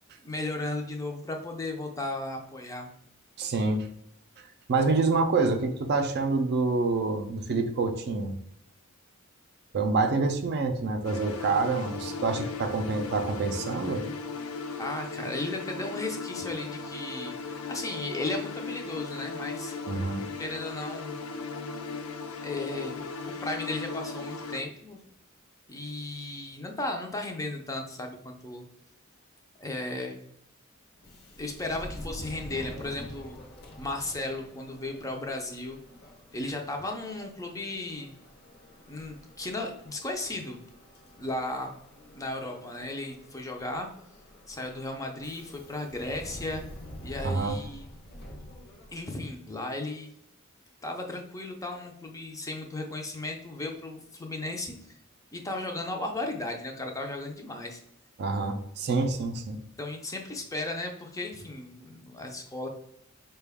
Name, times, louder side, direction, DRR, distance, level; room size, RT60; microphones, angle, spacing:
voice 1, 0.2-2.9 14.8-17.4 17.7-19.8 20.4-21.2 22.4-23.0 23.2-25.0 25.7-28.6 29.6-30.2 31.3-33.4 33.8-35.8 36.3-38.1 38.9-40.6 41.2-41.7 42.1-43.9 44.5-46.6 47.0-47.9 48.9-50.1 50.8-54.7 55.3-57.8 59.8-62.7, left 2 dB, 15° left, 3 dB, 0.5 m, -35 dB
voice 2, 3.4-3.9 4.7-8.3 9.7-14.0 19.9-20.3 47.2-47.6 58.2-59.6, right 3 dB, 50° right, 7 dB, 0.4 m, -27 dB
sound 1, 11.0-24.6, left 4 dB, 85° left, 0.5 m, -37 dB
Subway metro underground, 31.0-49.3, left 1 dB, 50° left, 0.7 m, -46 dB
4.6 x 2.2 x 3.4 m, 0.74 s
head